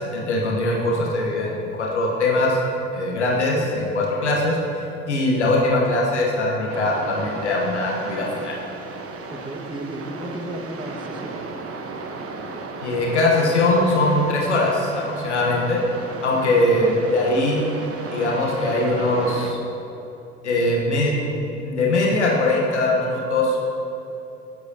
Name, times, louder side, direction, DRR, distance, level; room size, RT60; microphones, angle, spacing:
voice 1, 0.0-2.6 2.9-4.6 5.1-8.6 12.8-15.8 16.2-17.6 18.1-19.6 20.4-21.1 21.6-23.6, left 2 dB, 85° left, -2 dB, 1.3 m, -21 dB
sound 1, 6.7-19.5, right 3 dB, 40° right, 1.2 m, -35 dB
voice 2, 9.3-11.4, right 1 dB, 15° right, 2 dB, 1.7 m, -33 dB
18.0 x 8.0 x 2.9 m, 3.0 s
hypercardioid pair, 60°, 34 cm